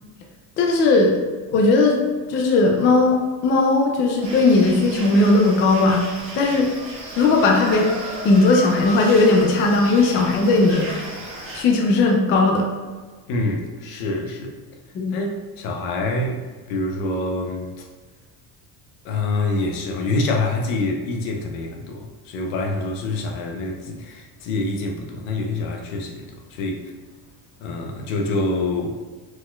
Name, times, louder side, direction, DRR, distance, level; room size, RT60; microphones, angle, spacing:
voice 1, 0.6-1.1 1.5-2.0 2.3-6.1 6.3-6.7 7.2-7.9 8.2-10.9 11.5-12.6 14.9-15.2, left 3 dB, 30° left, 1 dB, 0.4 m, -17 dB
sound 1, 4.2-11.6, right 1 dB, 30° right, 1.2 m, -34 dB
voice 2, 13.3-14.6 15.1-17.9 19.0-26.9 27.6-29.0, left 2 dB, 80° left, 2 dB, 0.9 m, -26 dB
5.0 x 4.0 x 2.3 m, 1.4 s
cardioid pair, 175°, 45 cm